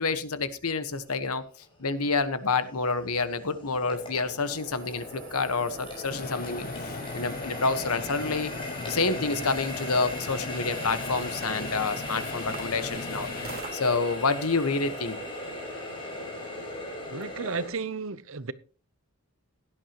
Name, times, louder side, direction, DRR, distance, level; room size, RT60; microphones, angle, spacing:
voice 1, 0.0-1.4 1.8-6.7 7.1-8.5 8.9-13.3 13.7-15.2, left 4 dB, 80° left, 1.4 m, -28 dB
Water tap faucet, 1.2-1.3 1.9-17.7, left 1 dB, 25° left, 6.0 m, -38 dB
sound 1, 4.5-14.0, right 5 dB, 40° right, 2.2 m, -47 dB
sound 2, 6.1-13.6, left 4 dB, 40° left, 0.5 m, -39 dB
voice 2, 17.1-18.5, right 4 dB, 60° right, 0.8 m, -33 dB
17.0 x 11.0 x 3.0 m
head